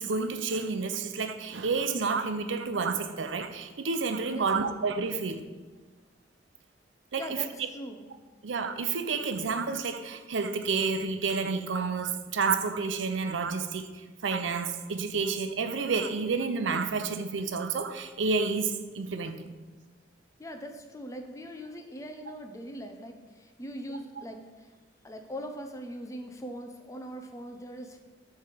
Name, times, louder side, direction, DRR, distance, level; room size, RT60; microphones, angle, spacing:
voice 1, 0.0-5.4 7.1-7.4 8.4-13.9 14.2-19.6, right 4 dB, 80° right, 0.6 m, -30 dB
voice 2, 4.3-4.6 7.2-8.1 20.4-24.7 25.0-28.0, equal, 15° left, 0.6 m, -41 dB
8.3 x 3.3 x 5.9 m
head